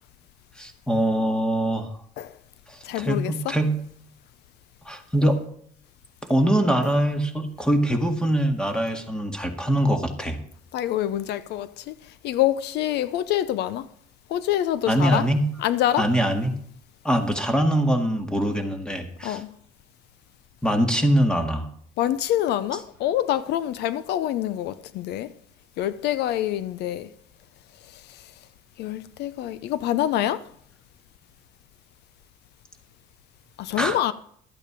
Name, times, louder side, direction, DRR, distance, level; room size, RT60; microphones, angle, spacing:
voice 1, 0.6-1.9 2.7-3.8 4.9-5.4 6.3-10.4 14.9-15.5 16.0-16.6 17.0-19.4 20.6-21.7 33.8-34.0, right 1 dB, 5° left, 1.9 m, -23 dB
voice 2, 2.8-3.3 10.7-11.9 12.2-13.9 14.3-15.2 15.6-16.0 19.2-19.5 22.0-25.3 25.8-27.1 28.8-30.4 33.6-34.1, left 12 dB, 80° left, 0.6 m, -26 dB
13.0 x 8.8 x 5.0 m
cardioid pair, 110°, 17 cm